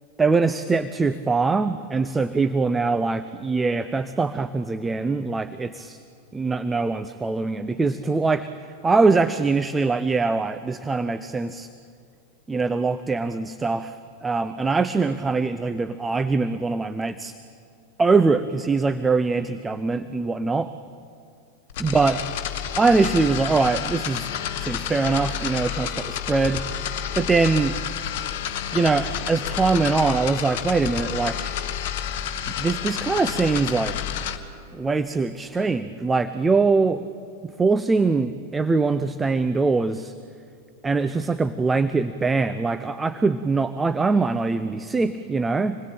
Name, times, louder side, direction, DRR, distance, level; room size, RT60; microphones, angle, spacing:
voice 1, 0.2-6.0 6.3-8.5 8.8-11.7 12.5-17.4 18.0-20.7 21.8-22.2 22.8-24.3 24.6-26.6 27.2-27.7 28.7-31.6 32.5-34.0 34.7-37.0 37.4-40.1 40.8-45.8, right 4 dB, 10° right, 12 dB, 0.8 m, -23 dB
sound 1, 21.7-34.4, left 9 dB, 50° left, 1.6 m, -30 dB
27.0 x 20.5 x 8.9 m, 2.4 s
figure-of-eight pair, 90°, 0 cm